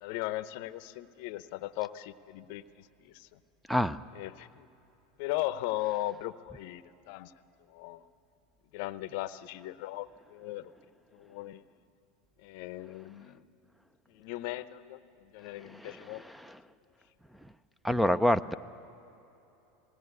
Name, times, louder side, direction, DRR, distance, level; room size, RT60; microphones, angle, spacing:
voice 1, 0.0-3.4 4.1-4.7 5.2-7.3 7.7-8.1 8.7-10.7 11.1-11.6 12.4-13.4 14.1-16.2, left 16 dB, 65° left, 14 dB, 0.7 m, -38 dB
voice 2, 3.7-4.0 15.6-16.6 17.4-17.5 17.8-18.5, equal, ahead, 14 dB, 0.6 m, -28 dB
20.5 x 18.0 x 9.6 m, 2.9 s
hypercardioid pair, 95°, 0 cm